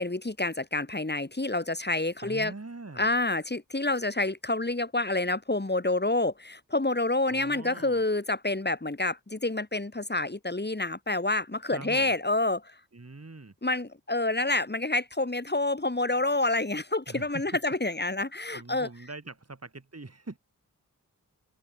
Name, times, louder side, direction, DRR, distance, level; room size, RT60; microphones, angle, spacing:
voice 1, 0.0-2.5 3.0-12.7 13.6-18.9, left 2 dB, 30° left, 4.3 m, -28 dB
voice 2, 2.2-3.1 7.3-8.0 11.7-12.1 12.9-13.5 17.1-17.6 18.5-20.4, right 3 dB, 45° right, 5.7 m, -43 dB
open air
wide cardioid pair, 80°, 36 cm